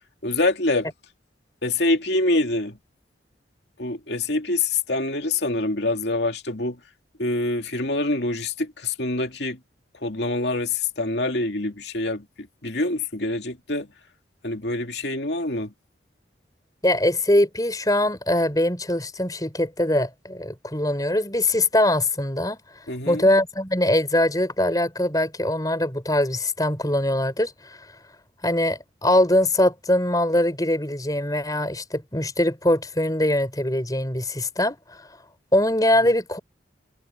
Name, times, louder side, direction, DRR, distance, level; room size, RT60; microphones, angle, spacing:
voice 1, 0.2-0.9 1.6-2.8 3.8-6.8 7.2-9.6 10.0-13.9 14.4-15.7 22.9-23.3, left 2 dB, 65° left, 2.5 m, -25 dB
voice 2, 16.8-22.6 23.0-27.5 28.4-35.0 35.5-36.4, left 1 dB, 20° left, 5.2 m, -22 dB
head